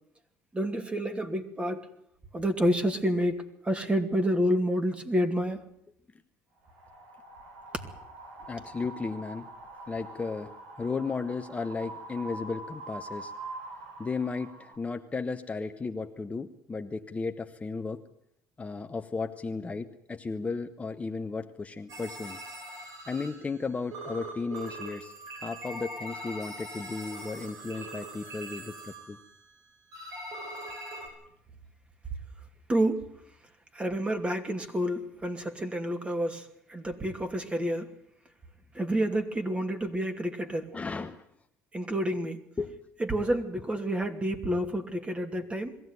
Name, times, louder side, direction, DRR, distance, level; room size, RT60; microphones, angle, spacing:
voice 1, 0.5-1.9 2.3-5.6 32.7-33.1 33.7-37.9 38.7-40.7 41.7-42.4 43.0-45.8, equal, 20° right, 6 dB, 2.7 m, -29 dB
Wind, 6.6-14.7, right 2 dB, 85° right, 5.6 m, -44 dB
voice 2, 8.5-9.5 9.9-13.3 14.0-18.0 18.6-22.4 23.1-25.1 25.4-29.2 40.7-41.2 42.6-42.7 43.8-43.9, left 4 dB, 20° left, 6 dB, 1.1 m, -34 dB
sound 1, 21.9-23.7 23.9-29.5 29.9-31.1, right 1 dB, 65° right, 7.8 m, -42 dB
21.5 x 15.5 x 9.6 m, 0.74 s
supercardioid pair, 95°, 6 cm